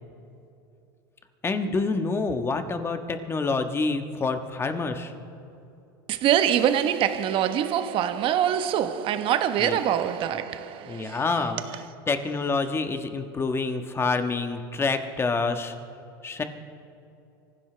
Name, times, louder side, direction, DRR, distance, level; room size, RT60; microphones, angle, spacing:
voice 1, 1.4-5.1 9.6-9.8 10.9-15.7 16.2-16.4, left 3 dB, 20° left, 1.4 m, -27 dB
voice 2, 6.1-11.2, right 10 dB, 50° right, 1.2 m, -24 dB
25.5 x 15.5 x 3.4 m
supercardioid pair, 105°, 12 cm